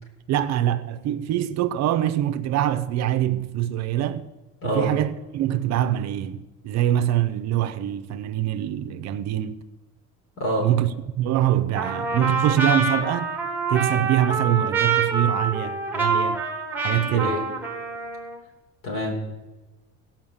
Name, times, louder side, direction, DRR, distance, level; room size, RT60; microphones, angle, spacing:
voice 1, 0.3-4.3 4.6-9.6 10.6-13.3 13.7-16.4 16.8-17.4, right 12 dB, 60° right, 0.7 m, -24 dB
voice 2, 10.4-10.7 17.1-17.4 18.8-19.1, equal, 45° left, 3.8 m, -26 dB
Trumpet, 11.8-18.4, right 4 dB, 5° right, 1.5 m, -26 dB
16.5 x 5.9 x 7.1 m
cardioid pair, 160°, 29 cm